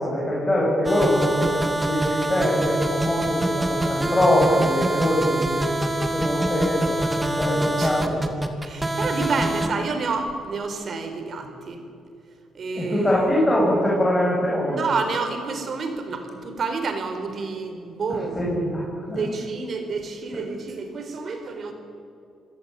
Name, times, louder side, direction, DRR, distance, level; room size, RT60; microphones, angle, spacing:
voice 1, 0.0-5.7 6.1-6.9 7.4-8.2 12.7-15.0 18.1-19.2, left 1 dB, 15° left, -5 dB, 7.8 m, -23 dB
sound 1, 0.8-9.7, right 1 dB, 15° right, 2.6 m, -25 dB
voice 2, 8.6-11.8 12.5-13.2 14.7-18.5 18.9-21.7, right 4 dB, 50° right, 6 dB, 4.4 m, -29 dB
25.5 x 17.0 x 9.4 m, 2.5 s
cardioid pair, 90°, 0 cm